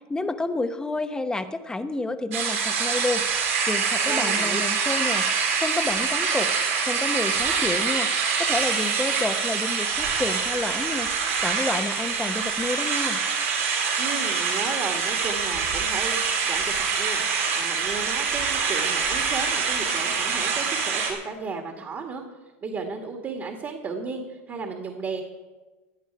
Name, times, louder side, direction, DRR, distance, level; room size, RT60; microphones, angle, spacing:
voice 1, 0.1-6.5 6.8-13.2, left 2 dB, 10° left, 9 dB, 1.1 m, -30 dB
sound 1, 2.3-21.1, right 5 dB, 90° right, 4.2 m, -25 dB
voice 2, 4.1-4.6 14.0-17.2 17.5-22.2 22.6-25.2, right 4 dB, 35° right, 3 dB, 2.1 m, -34 dB
17.0 x 10.5 x 4.8 m, 1.2 s
supercardioid pair, 110°, 7 cm